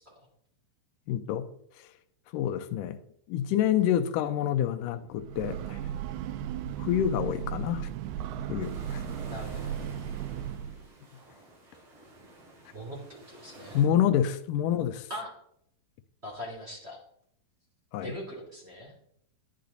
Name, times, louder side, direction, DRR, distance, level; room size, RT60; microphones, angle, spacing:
voice 1, 1.1-1.5 1.8-1.9 2.3-3.0 3.3-5.8 6.8-7.9 8.5-9.0 13.7-15.1 17.9-18.1, left 10 dB, 75° left, 2.1 m, -27 dB
Breathing / Train, 5.1-10.9, right 9 dB, 90° right, 2.7 m, -36 dB
sound 1, 8.6-13.9, right 1 dB, 40° right, 3.9 m, -51 dB
voice 2, 9.3-9.8 12.7-13.0 13.3-13.9 15.1-15.3 16.2-17.0 18.0-18.9, equal, 20° right, 2.7 m, -40 dB
10.5 x 9.9 x 4.0 m
omnidirectional pair, 4.4 m